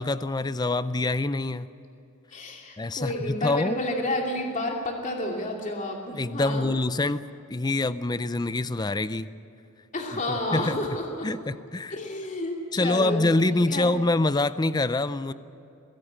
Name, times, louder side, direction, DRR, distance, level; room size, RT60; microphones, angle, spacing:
voice 1, 0.0-1.7 2.8-3.8 6.1-7.2 7.5-9.3 10.1-10.2 10.5-10.8 11.2-12.0 12.7-15.3, left 2 dB, 20° left, 14 dB, 0.5 m, -25 dB
voice 2, 2.3-6.7 9.9-11.3 11.9-13.9, left 1 dB, 35° left, 1 dB, 2.7 m, -30 dB
23.0 x 17.0 x 8.6 m, 2.8 s
head